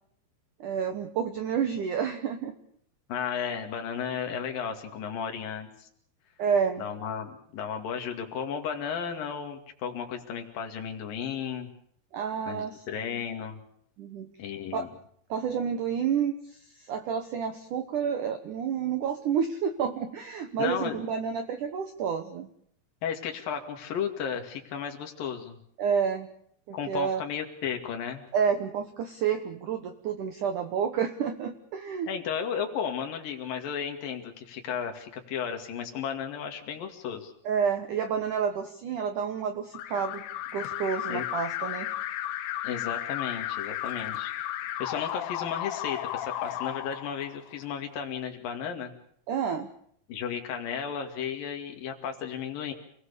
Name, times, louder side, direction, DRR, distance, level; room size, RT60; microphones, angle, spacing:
voice 1, 0.6-2.5 6.4-6.8 12.1-12.8 14.0-14.3 14.7-14.9 15.3-22.5 25.8-26.3 26.7-27.2 28.3-32.1 37.5-40.2 40.5-41.9 49.3-49.7, right 7 dB, 75° right, 9 dB, 1.9 m, -29 dB
voice 2, 3.1-5.9 6.8-11.7 12.5-13.6 14.4-14.9 20.6-21.0 23.0-25.6 26.7-28.3 32.1-37.3 41.1-41.3 42.6-44.3 44.8-48.9 50.1-52.7, left 7 dB, 55° left, 4 dB, 3.8 m, -34 dB
Alarm, 39.7-47.6, left 13 dB, 80° left, 3.3 m, -34 dB
28.0 x 17.5 x 6.9 m, 0.67 s
omnidirectional pair, 5.3 m